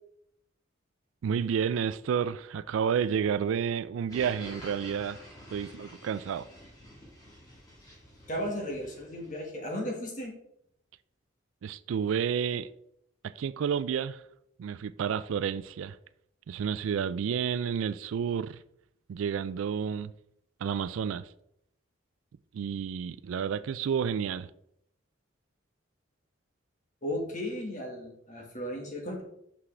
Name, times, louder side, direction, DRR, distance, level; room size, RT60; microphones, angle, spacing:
voice 1, 1.2-5.2 5.5-6.5 11.6-12.7 13.2-14.2 14.6-16.0 16.5-18.6 19.1-20.1 20.6-21.3 22.5-24.5, right 7 dB, 80° right, 0.3 m, -30 dB
sound 1, 4.1-9.4, left 1 dB, 20° left, 1.7 m, -49 dB
voice 2, 8.3-10.3 27.0-29.2, equal, 40° left, 1.6 m, -35 dB
6.2 x 5.9 x 3.3 m
head